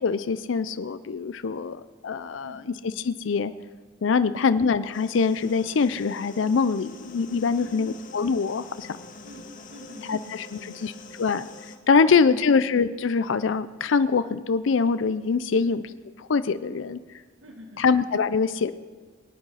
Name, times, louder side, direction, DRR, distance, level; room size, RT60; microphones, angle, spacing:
voice 1, 0.0-2.6 3.0-3.5 4.0-8.9 10.1-10.9 11.2-11.4 11.9-15.8 16.2-17.0 17.8-18.7, left 5 dB, 70° left, 13 dB, 0.5 m, -24 dB
sound 1, 4.9-11.8, left 3 dB, 45° left, 1.1 m, -45 dB
voice 2, 7.5-8.0 9.2-11.0 12.0-12.5 15.5-15.7 17.4-17.8, equal, 90° right, 2 dB, 1.9 m, -45 dB
23.5 x 9.0 x 5.6 m, 1.4 s
head